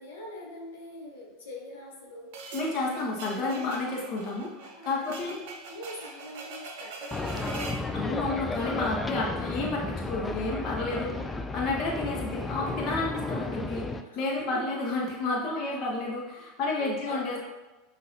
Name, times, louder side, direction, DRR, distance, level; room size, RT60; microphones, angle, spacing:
voice 1, 0.0-2.3 4.7-7.6 11.1-11.6 14.0-14.6 15.5-15.8 16.7-17.4, left 1 dB, 80° left, -3 dB, 1.0 m, -44 dB
sound 1, 2.3-7.9, right 4 dB, 65° right, 0.6 m, -42 dB
voice 2, 2.5-4.5 4.8-5.4 7.9-11.1 11.5-13.9 14.2-17.4, left 3 dB, 50° left, -2 dB, 0.9 m, -30 dB
sound 2, 7.1-14.0, left 3 dB, 15° left, 0.3 m, -33 dB
5.7 x 2.6 x 2.6 m, 1.1 s
hypercardioid pair, 85°, 0 cm